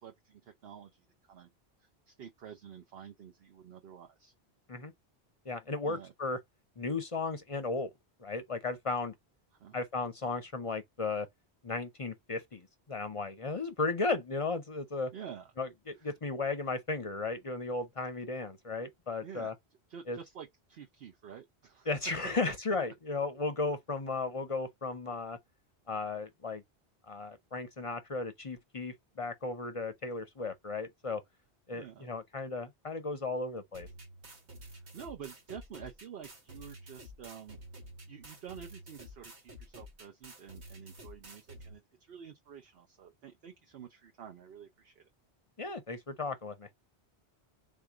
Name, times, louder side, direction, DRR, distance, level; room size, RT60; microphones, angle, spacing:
voice 1, 0.0-1.5 1.8-4.3 5.8-6.1 9.5-9.8 15.1-15.5 16.0-16.1 19.2-19.5 19.9-21.9 22.4-22.5 31.7-32.1 34.6-37.6 38.1-45.0, right 8 dB, 65° right, 0.9 m, -49 dB
voice 2, 5.5-6.4 6.8-7.9 8.2-9.1 9.7-11.3 11.6-15.1 15.6-19.5 20.1-20.2 21.9-25.4 25.9-26.6 27.1-31.2 31.7-33.9 45.6-46.7, left 3 dB, 35° left, 0.6 m, -35 dB
sound 1, 33.7-41.7, equal, 85° right, 1.8 m, -50 dB
3.8 x 2.7 x 4.7 m
omnidirectional pair, 1.1 m